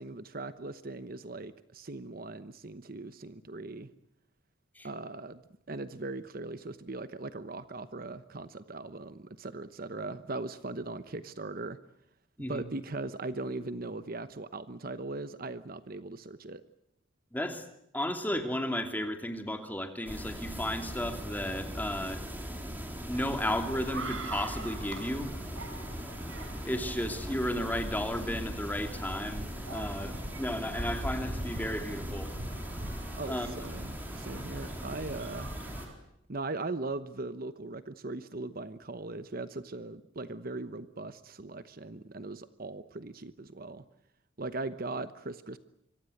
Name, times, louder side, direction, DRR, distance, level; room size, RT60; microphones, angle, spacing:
voice 1, 0.0-3.9 4.8-5.4 5.7-11.8 12.5-16.6 33.1-35.5 36.3-43.8 44.4-45.6, right 2 dB, 45° right, 12 dB, 1.0 m, -39 dB
voice 2, 17.3-17.6 17.9-22.2 23.1-25.3 26.6-32.3 33.3-33.5, left 1 dB, 10° left, 6 dB, 2.8 m, -33 dB
wood silence moresilent, 20.1-35.9, equal, 10° right, 4.2 m, -40 dB
sound 1, 23.1-35.9, right 1 dB, 80° right, 5.6 m, -42 dB
26.0 x 24.0 x 7.9 m, 0.76 s
head